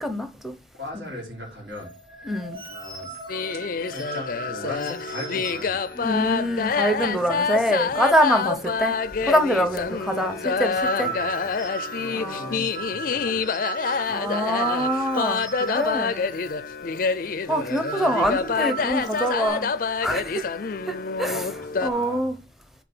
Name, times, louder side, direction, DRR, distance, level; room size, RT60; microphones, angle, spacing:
voice 1, 0.0-0.5 2.3-2.6 6.0-9.0 9.2-11.1 12.1-12.6 14.1-16.3 17.5-19.7 20.0-20.4 20.9-22.3, equal, ahead, 0.8 m, -25 dB
voice 2, 0.7-1.9 2.6-3.2 3.9-5.8 9.6-9.7 10.7-11.5 12.0-13.4 21.5-22.4, left 1 dB, 75° right, 3.8 m, -39 dB
sound 1, 1.7-7.7 7.9-8.1 8.4-8.9 9.2-16.5 16.8-17.0 17.5-19.5, right 4 dB, 25° right, 2.3 m, -37 dB
sound 2, 3.3-21.9, left 5 dB, 50° left, 0.4 m, -27 dB
6.7 x 4.2 x 6.0 m
head